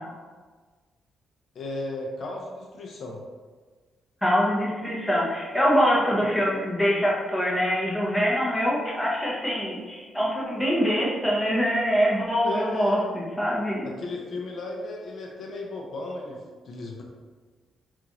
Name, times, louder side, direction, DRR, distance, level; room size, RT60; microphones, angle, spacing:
voice 1, 1.5-3.2 12.4-13.1 13.8-17.0, left 2 dB, 60° left, -1 dB, 0.5 m, -35 dB
voice 2, 4.2-13.9, equal, 10° left, -5 dB, 0.9 m, -24 dB
3.8 x 2.4 x 3.0 m, 1.4 s
cardioid pair, 95°, 0 cm